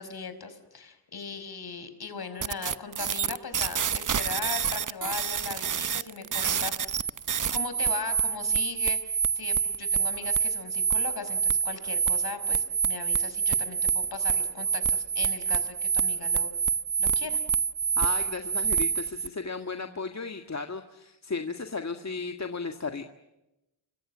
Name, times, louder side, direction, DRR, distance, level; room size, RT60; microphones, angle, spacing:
voice 1, 0.0-7.0 7.5-16.5 17.0-17.4, left 5 dB, 50° left, 10 dB, 5.3 m, -39 dB
sound 1, 2.4-19.3, right 6 dB, 40° right, 0.9 m, -27 dB
voice 2, 18.0-23.0, left 4 dB, 35° left, 6 dB, 1.9 m, -35 dB
29.5 x 25.5 x 7.5 m, 0.93 s
cardioid pair, 75°, 48 cm